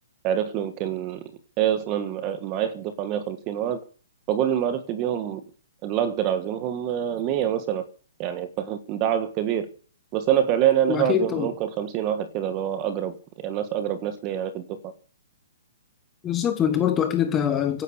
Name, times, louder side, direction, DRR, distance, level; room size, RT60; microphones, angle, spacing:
voice 1, 0.2-1.2 1.6-3.8 4.3-5.4 5.8-7.8 8.2-9.7 10.1-14.9, right 10 dB, 20° right, 1.6 m, -26 dB
voice 2, 10.9-11.5 16.2-17.8, left 9 dB, 10° left, 1.1 m, -23 dB
16.0 x 10.5 x 6.9 m
hypercardioid pair, 180°, 0 cm